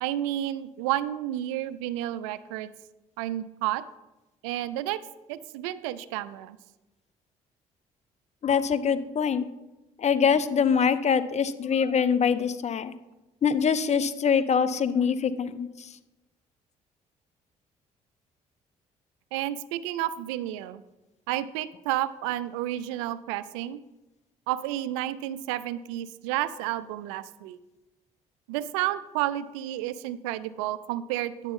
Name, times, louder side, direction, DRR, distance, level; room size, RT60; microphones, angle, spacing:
voice 1, 0.0-2.7 3.2-3.8 4.4-5.0 5.3-6.6 19.3-20.8 21.3-23.8 24.5-27.6 28.5-31.5, right 13 dB, 90° right, 15 dB, 0.4 m, -31 dB
voice 2, 8.4-9.5 10.0-12.9 13.4-15.7, left 6 dB, 45° left, 14 dB, 0.7 m, -24 dB
9.7 x 7.9 x 3.6 m, 1.0 s
hypercardioid pair, 55°, 16 cm